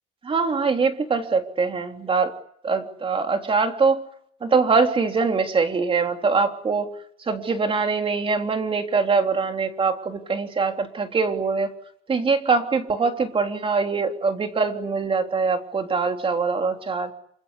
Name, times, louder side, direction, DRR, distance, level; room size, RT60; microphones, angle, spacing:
voice 1, 0.2-2.3 2.6-4.0 4.4-6.9 7.2-11.7 12.1-17.1, right 4 dB, 30° right, 5 dB, 3.5 m, -23 dB
27.5 x 26.0 x 8.4 m, 0.69 s
cardioid pair, 110°, 17 cm